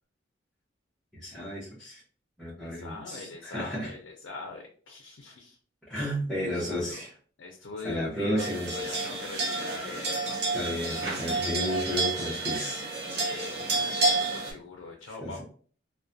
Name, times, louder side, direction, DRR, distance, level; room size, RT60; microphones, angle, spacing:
voice 1, 1.1-2.0 2.4-3.9 5.9-7.1 7.8-9.1 10.5-12.8 15.2-15.4, equal, 5° left, -11 dB, 0.6 m, -33 dB
voice 2, 2.6-5.6 6.4-7.0 7.4-10.4 13.1-15.4, left 3 dB, 70° left, 2 dB, 0.4 m, -42 dB
sound 1, 8.4-14.5, right 3 dB, 55° right, 0.6 m, -30 dB
2.3 x 2.1 x 2.5 m, 0.43 s
head